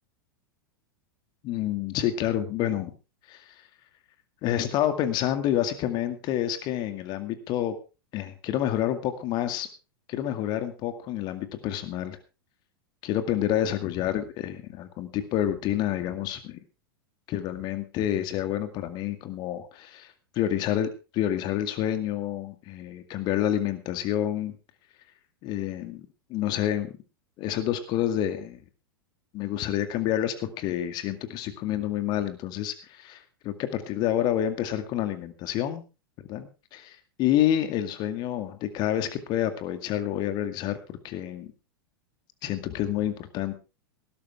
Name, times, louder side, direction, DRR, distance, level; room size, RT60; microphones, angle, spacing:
voice 1, 1.4-2.9 3.3-3.4 4.4-7.8 8.1-9.7 10.1-12.2 13.0-16.6 17.3-24.6 25.4-26.9 27.4-28.6 29.3-35.8 36.3-41.5 42.4-43.6, left 11 dB, 35° left, 9 dB, 2.2 m, -28 dB
18.5 x 12.5 x 3.5 m, 0.31 s
figure-of-eight pair, 90°, 12 cm